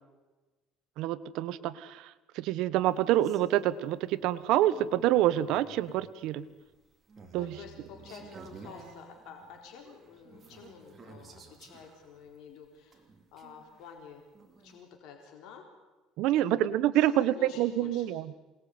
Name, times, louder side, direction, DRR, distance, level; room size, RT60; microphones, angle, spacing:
voice 1, 1.0-6.4 7.3-7.6 16.2-18.2, right 13 dB, 65° right, 15 dB, 1.1 m, -27 dB
sound 1, 2.9-14.8, right 4 dB, 20° right, 3.4 m, -53 dB
voice 2, 7.4-14.2 14.6-15.6 16.4-16.7 16.9-18.2, left 6 dB, 65° left, 3 dB, 4.0 m, -50 dB
27.0 x 19.5 x 9.5 m, 1.2 s
cardioid pair, 145°, 0 cm